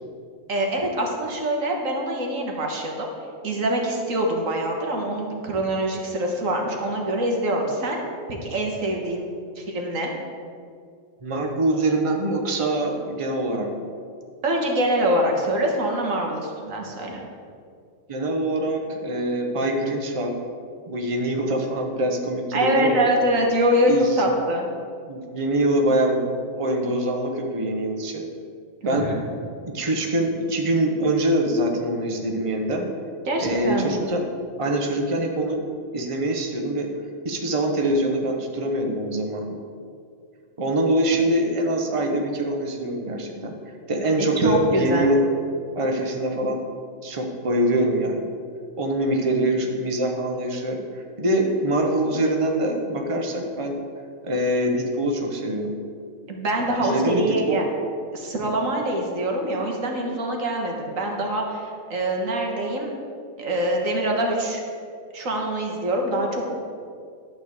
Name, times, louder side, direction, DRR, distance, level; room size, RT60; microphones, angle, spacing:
voice 1, 0.5-3.1 3.4-8.0 8.3-9.3 9.6-10.1 14.4-17.2 22.5-24.7 28.8-29.2 33.3-33.9 44.4-45.1 56.3-57.6 58.1-62.9 63.4-64.6 65.1-66.5, right 1 dB, 85° right, 0 dB, 1.8 m, -24 dB
voice 2, 11.2-13.7 18.1-20.3 20.9-23.0 23.8-24.3 25.1-28.2 28.9-29.1 29.7-32.9 33.4-34.2 34.6-35.6 35.9-36.9 37.2-39.5 40.6-43.5 43.9-45.2 45.7-46.6 47.0-48.2 48.8-53.8 54.2-55.7 56.8-57.6, right 1 dB, 25° right, 2 dB, 1.0 m, -24 dB
11.5 x 4.4 x 8.1 m, 2.3 s
omnidirectional pair, 1.4 m